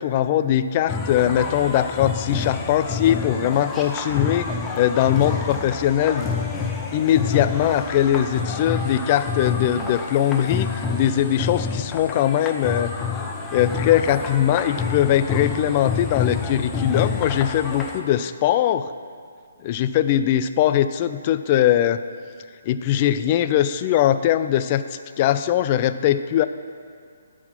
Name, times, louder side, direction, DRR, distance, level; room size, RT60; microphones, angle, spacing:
voice 1, 0.0-4.5 4.8-6.3 6.9-12.9 13.5-18.9 19.6-22.0 22.7-24.9 25.2-26.5, left 11 dB, 35° left, 12 dB, 0.3 m, -21 dB
sound 1, 0.9-18.0, left 5 dB, 15° left, 0.7 m, -28 dB
11.5 x 4.2 x 5.8 m, 2.2 s
figure-of-eight pair, 140°, 0 cm